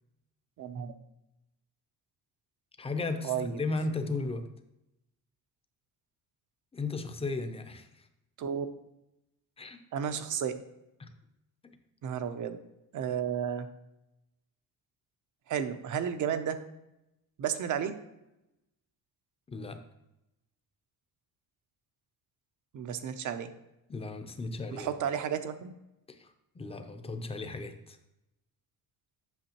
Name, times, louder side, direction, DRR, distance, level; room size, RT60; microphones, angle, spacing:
voice 1, 0.6-0.9 3.2-3.6 8.4-8.7 9.9-10.6 12.0-12.6 12.9-13.7 15.5-16.6 17.4-17.9 22.7-23.5 24.7-25.7, right 8 dB, 55° right, 10 dB, 0.6 m, -32 dB
voice 2, 2.8-4.5 6.7-8.1 9.6-9.8 11.0-11.1 19.5-19.8 23.9-24.9 26.1-28.0, left 3 dB, 15° left, 7 dB, 0.5 m, -35 dB
8.2 x 6.2 x 2.9 m, 0.90 s
cardioid pair, 160°, 36 cm